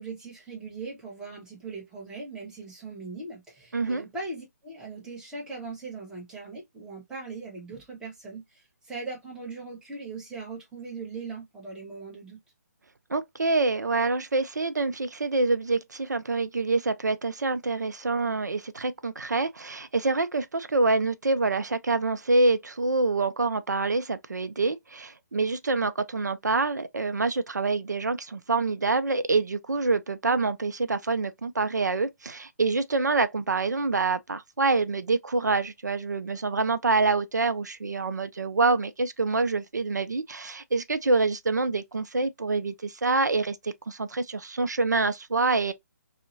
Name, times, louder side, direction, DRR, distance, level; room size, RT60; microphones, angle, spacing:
voice 1, 0.0-12.4, right 3 dB, 5° right, 0.9 m, -40 dB
voice 2, 3.7-4.0 13.1-45.7, right 3 dB, 90° right, 0.4 m, -26 dB
2.6 x 2.1 x 2.5 m
figure-of-eight pair, 145°, 9 cm